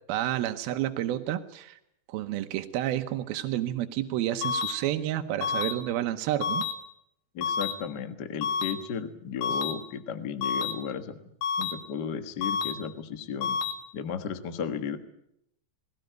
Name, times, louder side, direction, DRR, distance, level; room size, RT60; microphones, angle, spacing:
voice 1, 0.1-1.8 2.1-6.6 9.5-9.6, right 13 dB, 85° right, 7 dB, 2.8 m, -30 dB
sound 1, 4.4-4.7 5.4-5.7 6.4-6.7 7.4-7.7 8.4-8.7 9.4-9.7 10.4-10.7 11.4-11.7 12.4-12.7 13.4-13.7, left 6 dB, 75° left, 3.1 m, -28 dB
voice 2, 7.3-11.2 11.6-13.6 13.9-15.0, left 7 dB, 60° left, 9 dB, 1.1 m, -34 dB
20.5 x 17.0 x 9.2 m, 0.78 s
omnidirectional pair, 4.3 m